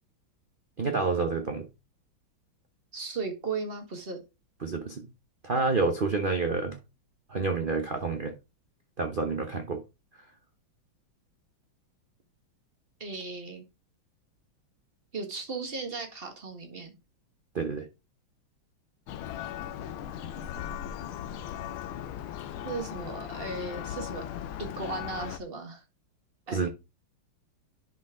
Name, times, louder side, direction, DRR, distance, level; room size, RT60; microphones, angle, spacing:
voice 1, 0.8-1.7 4.6-5.0 5.4-6.8 7.3-8.3 9.0-9.8 17.5-17.8 26.5-26.7, right 4 dB, 85° right, 0.4 m, -28 dB
voice 2, 2.9-4.2 13.0-13.6 15.1-16.9 22.6-24.2 24.6-25.8 26.5-26.6, right 4 dB, 30° right, 1.4 m, -36 dB
Church bell, 19.1-25.4, left 10 dB, 80° left, 1.5 m, -38 dB
11.0 x 4.3 x 3.6 m
omnidirectional pair, 2.2 m